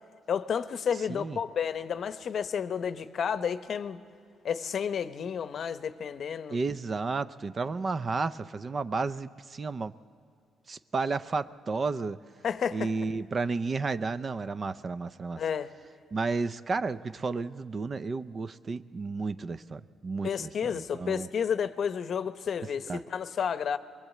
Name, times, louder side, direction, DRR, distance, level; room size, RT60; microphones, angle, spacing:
voice 1, 0.3-4.0 4.4-6.6 12.4-12.9 15.4-15.7 20.2-23.8, left 7 dB, 55° left, 0.8 m, -31 dB
voice 2, 6.5-9.9 10.7-12.2 12.7-15.4 16.1-21.3 22.9-23.0, right 4 dB, 35° right, 0.5 m, -32 dB
22.0 x 22.0 x 8.3 m
cardioid pair, 115°, 0 cm